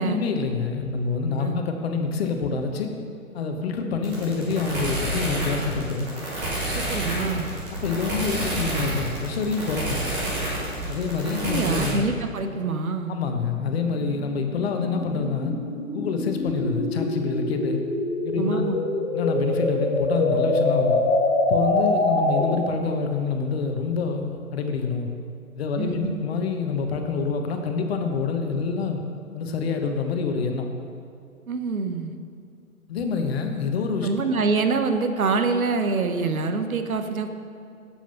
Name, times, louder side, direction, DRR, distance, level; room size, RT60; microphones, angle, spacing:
voice 1, 0.0-2.9 3.3-6.1 7.8-10.0 10.9-12.0 13.1-15.6 15.9-17.8 18.2-18.7 19.1-21.0 21.5-25.1 25.5-29.0 29.3-30.7 32.9-34.1, left 4 dB, 45° left, 5 dB, 1.1 m, -26 dB
sound 1, 4.0-11.9, right 1 dB, 5° right, 0.4 m, -29 dB
voice 2, 6.6-7.5 11.5-13.1 18.4-18.8 25.8-26.2 31.5-32.2 34.0-37.3, right 4 dB, 75° right, 7 dB, 0.9 m, -25 dB
sound 2, 12.5-22.7, left 2 dB, 65° left, 1.8 m, -25 dB
7.5 x 7.3 x 5.5 m, 2.4 s
figure-of-eight pair, 130°, 42 cm